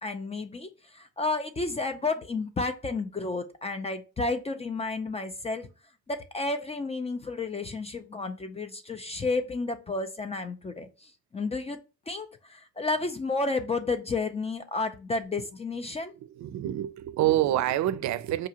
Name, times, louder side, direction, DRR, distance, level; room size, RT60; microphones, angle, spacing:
voice 1, 0.0-5.7 6.1-11.8 12.1-16.1, left 3 dB, 20° left, 0.4 m, -31 dB
voice 2, 16.1-18.5, right 13 dB, 65° right, 0.5 m, -27 dB
4.8 x 2.4 x 2.8 m
cardioid pair, 90°, 30 cm